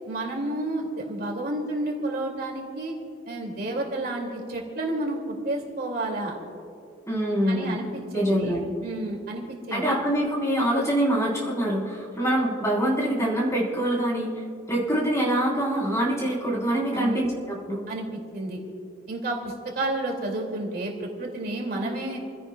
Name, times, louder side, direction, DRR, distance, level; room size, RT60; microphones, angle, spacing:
voice 1, 0.1-3.0 3.3-6.3 7.5-10.0 16.9-17.2 17.9-18.6 19.1-22.2, right 2 dB, 50° right, 0 dB, 2.4 m, -31 dB
voice 2, 7.1-7.8 8.1-8.6 9.7-14.3 14.7-17.8, right 1 dB, 15° left, -4 dB, 3.9 m, -25 dB
28.5 x 16.5 x 2.3 m, 2.7 s
head